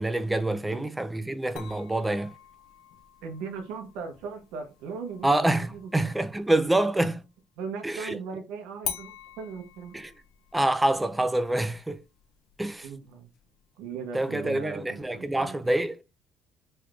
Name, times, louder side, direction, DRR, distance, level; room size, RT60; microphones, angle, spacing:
voice 1, 0.0-2.3 5.2-7.2 7.8-8.2 9.9-10.1 10.5-12.0 12.6-12.9 14.1-16.0, right 1 dB, 10° right, 0.3 m, -26 dB
sound 1, 1.6-7.1 8.8-13.8, left 9 dB, 80° left, 0.5 m, -45 dB
voice 2, 3.2-5.3 5.7-5.9 7.6-10.0 12.8-13.3 13.8-15.6, right 5 dB, 90° right, 0.7 m, -38 dB
3.3 x 3.1 x 2.4 m
cardioid pair, 125°, 0 cm